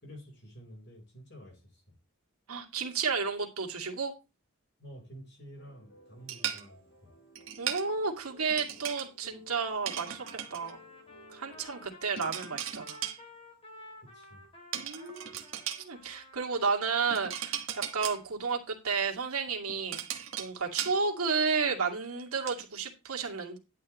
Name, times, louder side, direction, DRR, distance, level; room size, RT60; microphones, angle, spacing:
voice 1, 0.0-2.0 4.8-7.1 14.0-14.5 15.2-15.3, equal, 50° left, 4.3 m, -50 dB
voice 2, 2.5-4.1 7.6-10.2 10.5-10.8 11.3-13.0 14.8-15.3 15.8-23.6, right 5 dB, 90° right, 2.3 m, -32 dB
sound 1, 5.6-11.9, left 1 dB, 75° left, 3.5 m, -57 dB
sound 2, 6.3-6.7 7.4-7.9 8.5-9.1 9.9-10.7 12.2-13.2 14.7-15.8 17.1-18.2 19.5-21.0 21.5-21.6 22.0-22.6, right 10 dB, 65° right, 1.3 m, -37 dB
Trumpet, 10.2-17.3, left 1 dB, 25° left, 3.0 m, -53 dB
11.0 x 8.6 x 3.1 m
head